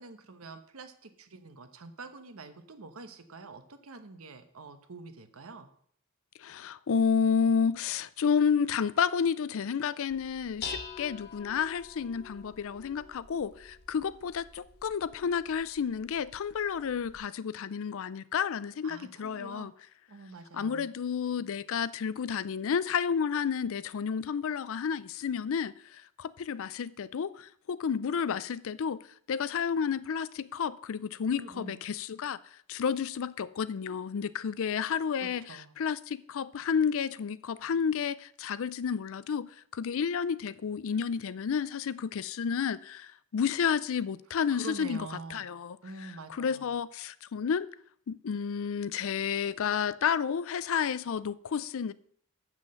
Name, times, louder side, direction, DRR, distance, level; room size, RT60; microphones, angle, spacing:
voice 1, 0.0-5.7 18.8-19.7 20.1-20.9 31.3-31.8 35.2-35.7 44.5-45.5 45.8-46.7, right 3 dB, 70° right, 1.1 m, -46 dB
voice 2, 6.4-19.7 20.5-29.0 29.3-32.4 32.7-47.7 48.1-51.9, left 6 dB, 65° left, 0.4 m, -31 dB
Dishes pots and pans, 10.1-17.2, left 5 dB, 50° left, 1.3 m, -46 dB
7.5 x 6.2 x 7.7 m
head